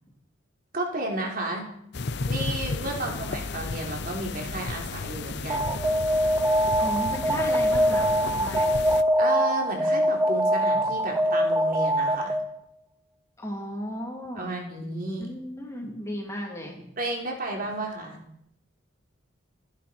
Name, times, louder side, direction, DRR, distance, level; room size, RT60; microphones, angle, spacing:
voice 1, 0.7-1.7 2.3-5.7 9.2-12.4 14.4-15.4 17.0-18.2, right 2 dB, 40° right, 0 dB, 3.7 m, -32 dB
sound 1, 1.9-9.0, left 3 dB, 50° left, 0.6 m, -33 dB
voice 2, 2.9-3.4 6.8-8.7 13.4-14.5 15.2-16.8, equal, 15° left, -1 dB, 3.5 m, -35 dB
Alarm, 5.5-12.6, equal, 10° right, 1.0 m, -23 dB
29.5 x 10.5 x 4.6 m, 0.75 s
head